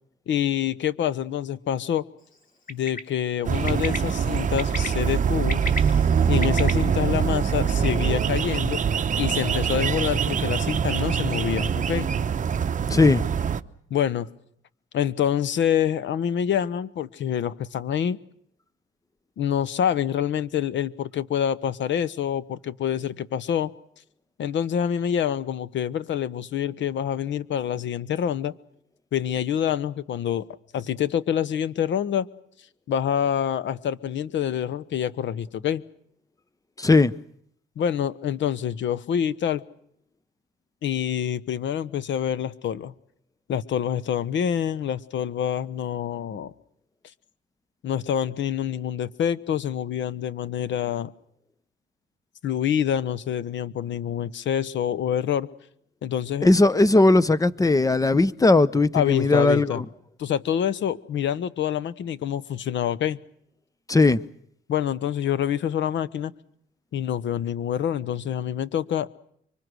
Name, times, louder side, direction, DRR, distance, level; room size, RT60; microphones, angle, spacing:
voice 1, 0.3-2.0 2.7-5.6 6.3-8.8 9.2-12.1 13.9-14.3 14.9-18.2 19.4-23.7 24.4-28.5 29.1-30.5 30.7-32.3 32.9-35.8 37.8-39.6 40.8-42.9 43.5-46.5 47.8-51.1 52.4-55.5 56.0-56.5 58.9-59.8 60.2-63.2 64.7-66.3 66.9-69.1, left 9 dB, 70° left, 1.1 m, -26 dB
Bird, 2.7-3.0 3.7-4.0 4.6-4.9 5.3-6.7, left 2 dB, 45° left, 4.3 m, -31 dB
sound 1, 3.4-13.6, right 7 dB, 40° right, 1.0 m, -24 dB
voice 2, 12.9-13.3 36.8-37.1 56.4-59.8 63.9-64.2, left 2 dB, 15° left, 0.9 m, -18 dB
25.5 x 24.5 x 6.3 m
cardioid pair, 90°, 20 cm